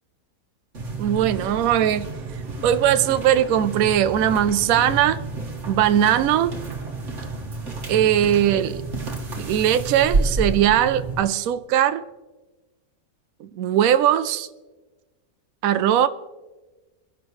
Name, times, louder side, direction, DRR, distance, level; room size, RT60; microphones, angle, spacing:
sound 1, 0.7-11.2, right 3 dB, 50° right, 2.0 m, -30 dB
voice 1, 1.0-2.1 2.6-5.2 5.7-6.5 7.9-8.8 9.3-12.0 13.4-14.5 15.6-16.1, right 10 dB, 70° right, 1.0 m, -20 dB
23.5 x 11.0 x 3.2 m
omnidirectional pair, 1.7 m